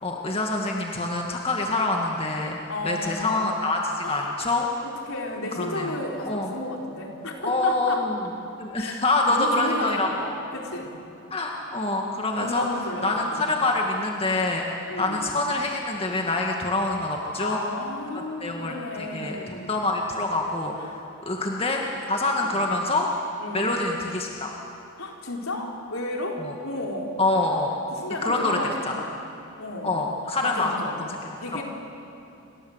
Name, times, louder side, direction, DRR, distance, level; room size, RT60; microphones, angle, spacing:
voice 1, 0.0-2.6 2.8-4.7 5.6-6.0 6.2-6.5 7.4-8.2 8.6-10.3 11.3-12.7 13.0-14.6 15.0-17.6 18.1-23.1 23.5-24.5 26.4-26.5 27.2-27.7 28.2-28.6 29.8-30.8 31.5-31.6, left 2 dB, 25° left, 0 dB, 1.9 m, -26 dB
voice 2, 2.7-3.5 4.0-4.3 4.8-8.1 8.8-10.2 10.5-11.0 12.4-13.5 14.9-15.3 17.4-19.7 20.8-21.0 22.4-22.7 23.4-23.8 25.0-27.2 27.9-29.2 29.6-30.0 30.4-31.0 31.4-31.6, left 1 dB, 70° left, 0 dB, 4.2 m, -33 dB
28.5 x 24.5 x 8.1 m, 2.8 s
head